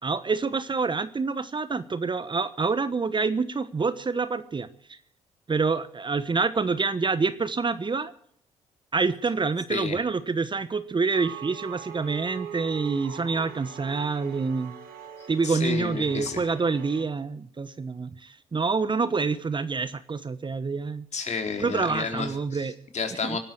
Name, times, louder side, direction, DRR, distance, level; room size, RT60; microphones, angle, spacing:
voice 1, 0.0-5.0 5.5-8.1 8.9-14.7 15.3-21.1 21.6-22.7 23.2-23.4, right 4 dB, 30° right, 14 dB, 1.1 m, -27 dB
sound 1, 11.1-17.0, right 9 dB, 65° right, 2.9 m, -42 dB
voice 2, 15.2-16.4 21.1-23.4, left 5 dB, 45° left, 5 dB, 4.1 m, -31 dB
24.5 x 12.5 x 4.5 m, 0.62 s
hypercardioid pair, 50°, 16 cm